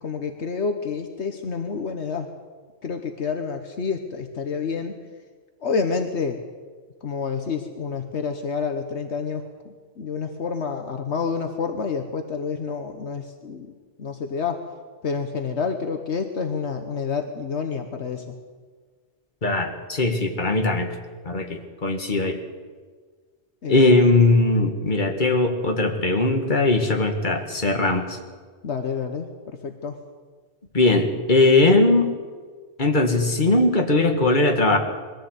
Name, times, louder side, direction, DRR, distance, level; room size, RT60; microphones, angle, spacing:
voice 1, 0.0-2.3 2.8-5.0 5.6-6.4 7.0-13.7 14.0-14.6 15.0-18.3 23.6-24.0 28.6-30.0, left 5 dB, 70° left, 6 dB, 1.4 m, -28 dB
voice 2, 19.4-20.9 21.2-22.4 23.7-28.2 30.7-32.1 32.8-34.8, left 2 dB, 45° left, 4 dB, 2.0 m, -19 dB
21.5 x 14.5 x 8.2 m, 1.5 s
omnidirectional pair, 1.2 m